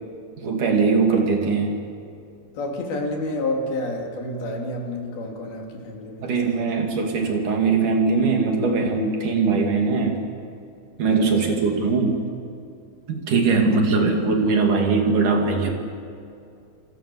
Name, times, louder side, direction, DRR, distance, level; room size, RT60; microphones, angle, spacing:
voice 1, 0.4-1.8 6.2-10.2 11.0-12.2 13.1-15.7, right 4 dB, 60° right, 2 dB, 4.0 m, -21 dB
voice 2, 2.5-7.1 11.2-11.3 13.5-13.6, left 2 dB, 85° left, 1 dB, 5.0 m, -30 dB
28.0 x 26.0 x 7.1 m, 2.4 s
omnidirectional pair, 4.2 m